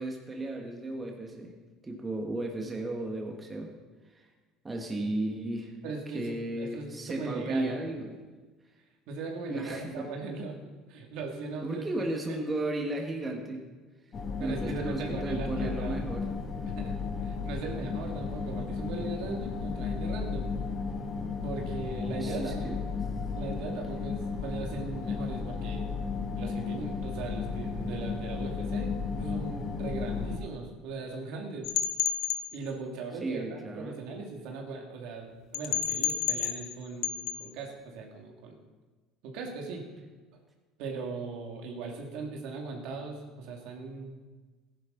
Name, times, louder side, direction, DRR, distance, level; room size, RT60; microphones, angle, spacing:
voice 1, 0.0-1.5 1.8-3.7 4.1-4.2 4.6-5.7 6.1-8.1 9.5-10.1 11.6-13.6 14.4-16.3 22.2-22.8 33.2-34.0, right 2 dB, 20° right, 1 dB, 1.8 m, -34 dB
voice 2, 5.8-7.8 9.1-10.6 10.9-11.8 12.3-12.4 14.4-16.0 16.7-17.0 17.2-20.5 21.4-22.7 23.3-25.9 26.3-31.7 32.5-38.6 39.2-39.8 40.8-44.2, right 4 dB, 75° right, 1 dB, 2.4 m, -39 dB
sound 1, 14.1-30.4, left 5 dB, 40° left, 1.9 m, -34 dB
sound 2, 31.6-32.4 35.5-36.8 37.0-37.4, left 10 dB, 65° left, 1.0 m, -30 dB
15.0 x 10.5 x 4.0 m, 1.3 s
supercardioid pair, 105°, 0 cm